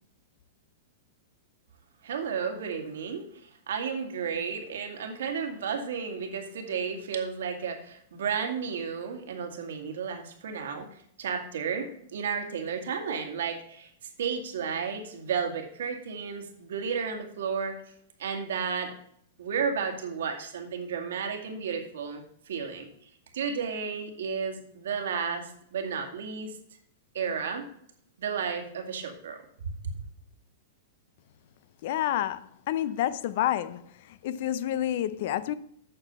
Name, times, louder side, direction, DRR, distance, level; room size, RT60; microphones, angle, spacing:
voice 1, 2.0-10.9 11.2-13.9 14.2-17.7 18.2-18.9 19.4-22.2 22.5-22.9 23.3-26.6 27.1-27.6 28.2-29.4, right 6 dB, 80° right, 2.0 m, -32 dB
voice 2, 31.8-33.8 34.2-35.5, left 12 dB, 55° left, 0.6 m, -29 dB
8.9 x 6.2 x 5.4 m
hypercardioid pair, 150°, 0 cm